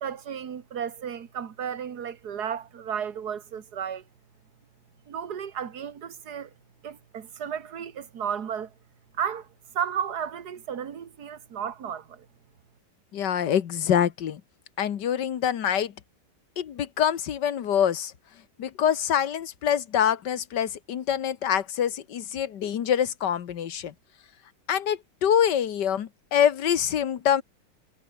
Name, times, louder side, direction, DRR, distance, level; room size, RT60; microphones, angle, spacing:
voice 1, 0.0-4.0 5.1-6.5 6.8-8.7 9.2-9.5 9.7-12.3, right 8 dB, 60° right, 2.1 m, -33 dB
voice 2, 13.1-14.4 14.8-15.9 16.6-18.1 18.6-23.9 24.7-27.4, left 9 dB, 70° left, 1.8 m, -25 dB
omnidirectional pair, 2.0 m